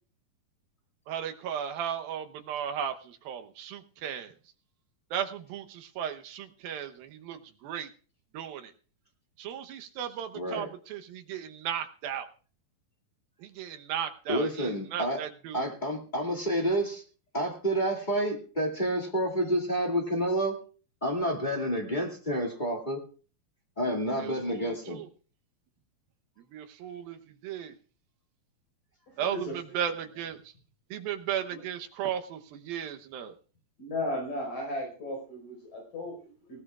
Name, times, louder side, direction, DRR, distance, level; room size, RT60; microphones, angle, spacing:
voice 1, 1.1-4.3 5.1-7.9 8.3-8.7 9.4-12.3 13.4-15.7 24.2-25.1 26.5-27.7 29.2-30.5 30.9-33.3, right 9 dB, 80° right, 6 dB, 2.8 m, -36 dB
voice 2, 10.3-10.7 14.3-15.2 15.5-17.0 17.3-20.5 21.0-23.0 23.8-25.0, right 1 dB, 20° left, -2 dB, 1.5 m, -29 dB
voice 3, 29.1-29.6 31.5-31.6 33.8-36.6, left 1 dB, 50° left, 1 dB, 6.2 m, -36 dB
19.5 x 18.0 x 2.4 m, 0.39 s
omnidirectional pair, 4.3 m